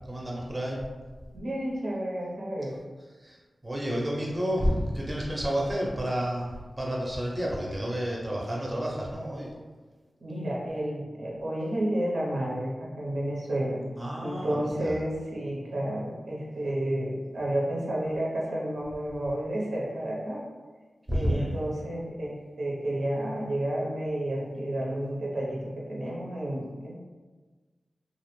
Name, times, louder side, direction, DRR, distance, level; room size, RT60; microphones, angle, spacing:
voice 1, 0.1-0.9 3.2-3.4 3.6-9.5 14.0-15.0 21.1-21.5, equal, 20° right, -3 dB, 0.5 m, -30 dB
voice 2, 1.3-2.8 10.2-13.8 14.2-20.4 21.1-26.9, right 1 dB, 85° right, -4 dB, 0.6 m, -31 dB
2.4 x 2.0 x 3.0 m, 1.3 s
wide cardioid pair, 75°, 0 cm